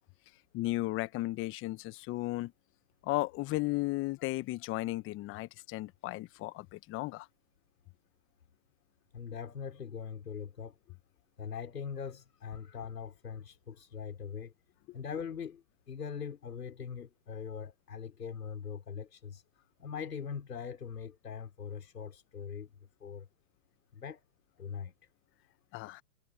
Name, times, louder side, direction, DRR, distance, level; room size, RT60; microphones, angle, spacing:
voice 1, 0.5-2.5 3.0-7.3 25.7-26.0, left 19 dB, 25° left, 1.2 m, -35 dB
voice 2, 9.1-10.8 11.4-14.5 14.9-19.4 19.8-22.7 23.0-23.3 23.9-24.2 24.6-24.9, left 7 dB, 85° left, 5.5 m, -41 dB
hypercardioid pair, 125°, 46 cm